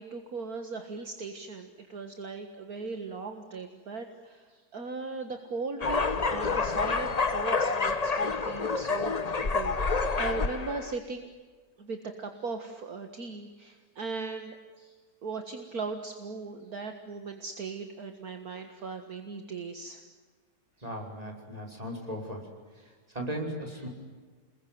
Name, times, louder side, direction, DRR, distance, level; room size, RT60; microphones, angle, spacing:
voice 1, 0.0-9.2 9.5-9.8 10.2-11.3 11.8-14.9 15.2-20.0, right 4 dB, 60° right, 6 dB, 2.2 m, -38 dB
sound 1, 5.8-10.9, left 4 dB, 25° left, 1.0 m, -28 dB
voice 2, 20.8-22.5 22.8-23.9, equal, 20° right, 1 dB, 5.9 m, -37 dB
29.0 x 21.5 x 9.4 m, 1.4 s
omnidirectional pair, 1.8 m